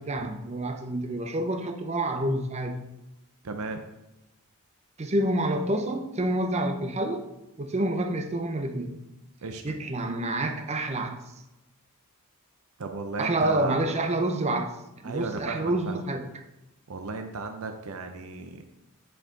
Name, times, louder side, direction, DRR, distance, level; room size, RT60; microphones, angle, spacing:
voice 1, 0.0-2.9 5.0-7.2 7.6-9.0 9.6-11.2 13.2-14.7 15.0-16.3, right 1 dB, 30° right, 7 dB, 0.7 m, -28 dB
voice 2, 3.4-3.8 9.4-9.8 12.8-13.9 15.0-16.0 16.9-18.6, right 3 dB, 70° right, 6 dB, 0.6 m, -35 dB
10.0 x 4.7 x 3.8 m, 0.95 s
head